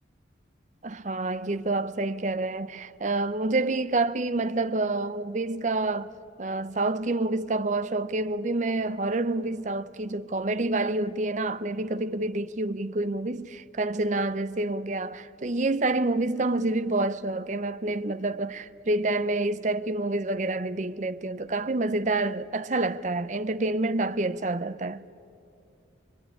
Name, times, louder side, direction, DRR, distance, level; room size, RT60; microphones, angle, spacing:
voice 1, 0.8-6.1 6.4-25.0, right 2 dB, 40° right, 0.6 m, -28 dB
24.0 x 23.0 x 9.9 m
head